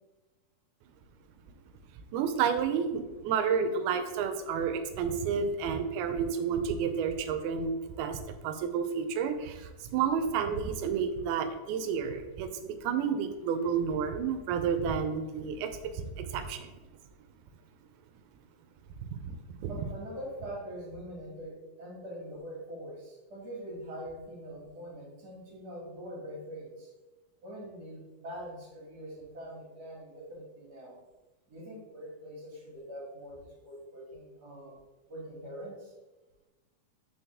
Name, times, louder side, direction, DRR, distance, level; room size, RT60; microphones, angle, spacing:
voice 1, 2.1-16.7 19.2-19.4 19.6-19.7, right 6 dB, 85° right, 8 dB, 2.6 m, -31 dB
voice 2, 19.7-26.9 27.4-31.0 31.5-33.4 33.6-34.8 35.1-35.9, equal, 35° right, -2 dB, 1.9 m, -43 dB
8.2 x 4.9 x 3.5 m, 1.1 s
omnidirectional pair, 4.4 m